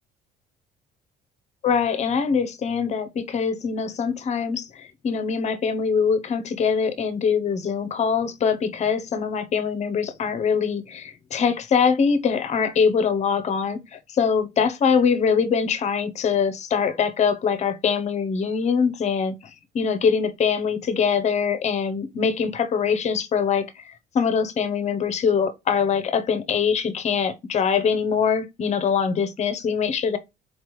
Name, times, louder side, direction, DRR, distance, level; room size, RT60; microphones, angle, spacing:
voice 1, 1.6-19.3 19.7-23.7 24.1-30.2, left 6 dB, 40° left, 0.7 m, -23 dB
4.3 x 3.2 x 3.0 m
cardioid pair, 110°, 17 cm